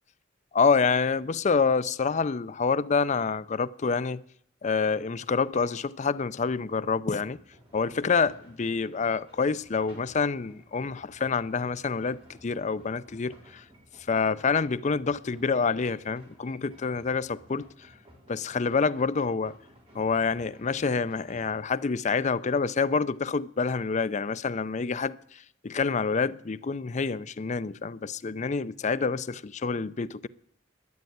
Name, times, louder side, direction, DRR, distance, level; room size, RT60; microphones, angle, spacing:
voice 1, 0.5-4.2 4.6-7.4 7.7-13.6 14.1-17.7 18.3-19.5 19.9-30.3, left 5 dB, 40° left, 0.5 m, -27 dB
sound 1, 5.5-6.5 7.8-8.6, right 2 dB, 90° right, 6.3 m, -56 dB
sound 2, 7.0-21.6, equal, 30° right, 3.8 m, -56 dB
12.0 x 9.0 x 9.3 m
head